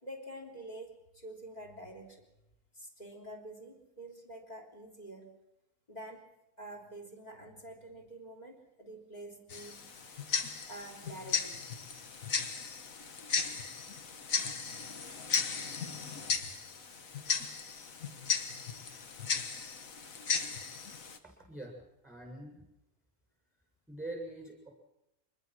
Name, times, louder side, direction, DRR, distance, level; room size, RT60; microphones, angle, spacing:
voice 1, 0.0-2.2 2.7-5.4 5.9-10.2 10.7-11.6, right 1 dB, 25° left, 3 dB, 3.6 m, -47 dB
Tick-tock, 9.5-21.2, left 5 dB, 65° left, 1.8 m, -36 dB
voice 2, 21.2-22.6 23.9-24.7, right 2 dB, ahead, 1 dB, 7.2 m, -44 dB
25.0 x 20.5 x 6.3 m, 0.91 s
omnidirectional pair, 1.5 m